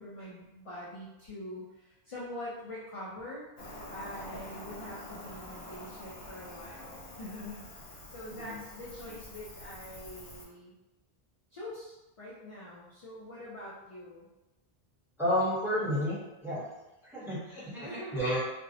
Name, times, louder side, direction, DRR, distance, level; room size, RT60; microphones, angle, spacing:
voice 1, 0.0-3.5 3.9-10.7 11.5-14.3 17.8-18.4, left 1 dB, 45° left, -7 dB, 0.4 m, -44 dB
Cricket, 3.6-10.4, left 1 dB, 80° left, 0.9 m, -46 dB
voice 2, 8.3-8.6 15.2-16.6 17.1-18.4, equal, 5° right, -9 dB, 0.8 m, -31 dB
2.5 x 2.0 x 2.7 m, 1.0 s
omnidirectional pair, 1.0 m